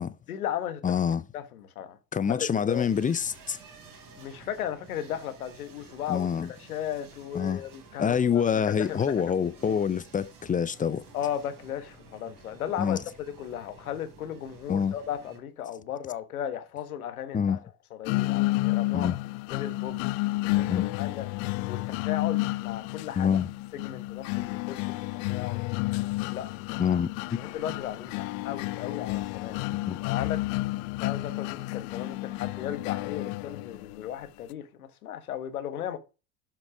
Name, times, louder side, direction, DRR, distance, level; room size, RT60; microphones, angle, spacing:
voice 1, 0.3-0.8 1.3-2.0 2.3-2.9 4.2-6.3 6.6-9.8 11.1-17.6 17.9-19.2 19.5-20.0 20.5-21.3 21.7-23.4 23.7-24.9 25.3-25.7 26.3-27.0 27.3-29.6 30.0-30.4 31.0-36.0, left 10 dB, 85° left, 1.3 m, -36 dB
voice 2, 0.8-1.2 2.1-3.6 6.1-6.5 7.3-7.6 8.0-11.0 12.8-13.0 14.7-14.9 17.3-17.6 18.9-19.2 20.7-20.9 23.2-23.5 26.8-27.1 29.8-30.0, left 7 dB, 20° left, 0.5 m, -26 dB
sound 1, 2.7-15.4, right 4 dB, 50° right, 3.7 m, -52 dB
sound 2, 18.1-34.0, left 20 dB, 60° left, 0.6 m, -31 dB
7.4 x 6.0 x 4.8 m
hypercardioid pair, 80°, 42 cm